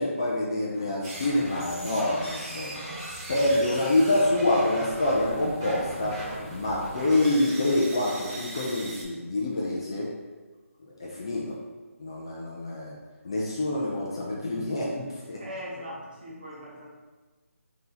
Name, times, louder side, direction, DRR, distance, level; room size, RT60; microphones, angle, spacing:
voice 1, 0.0-2.8 3.3-6.2 6.5-10.1 11.0-11.6 12.0-13.0 13.2-15.4, left 1 dB, 20° left, -4 dB, 0.3 m, -26 dB
sound 1, 1.0-9.0, right 1 dB, 20° right, 0.7 m, -38 dB
voice 2, 15.3-16.9, equal, 35° right, -4 dB, 1.0 m, -41 dB
4.0 x 2.7 x 3.8 m, 1.3 s
hypercardioid pair, 170°, 8 cm